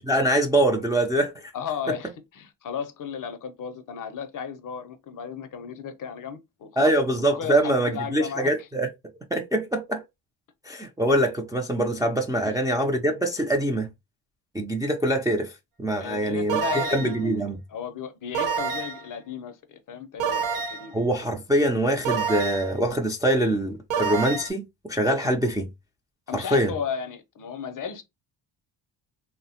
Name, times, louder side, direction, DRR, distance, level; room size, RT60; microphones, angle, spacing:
voice 1, 0.0-1.3 6.8-8.9 9.3-10.0 10.7-13.9 14.5-15.5 15.8-16.6 16.9-17.6 20.9-25.7 26.3-26.7, right 1 dB, 10° right, 0.3 m, -24 dB
voice 2, 1.5-6.8 7.4-8.7 12.5-12.6 16.0-17.4 17.7-21.0 26.3-28.0, left 7 dB, 45° left, 0.5 m, -35 dB
sound 1, 16.5-17.2 18.3-19.1 20.2-20.9 22.1-22.8 23.9-24.5, right 6 dB, 80° right, 1.0 m, -27 dB
3.1 x 2.0 x 2.7 m
cardioid pair, 110°, 45 cm